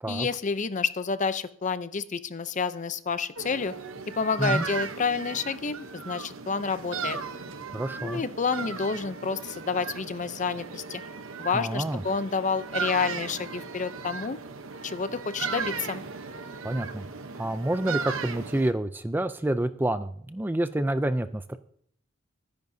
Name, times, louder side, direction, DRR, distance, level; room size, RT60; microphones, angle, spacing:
voice 1, 0.1-3.7 4.1-7.2 8.0-11.0 11.4-14.4 14.8-16.0, left 5 dB, 35° left, 13 dB, 0.6 m, -29 dB
sound 1, 3.4-18.7, right 5 dB, 80° right, 0.9 m, -36 dB
voice 2, 7.7-8.2 11.5-12.0 16.6-17.1 17.4-21.6, right 1 dB, 10° right, 11 dB, 0.4 m, -28 dB
22.5 x 10.5 x 2.7 m, 0.63 s
head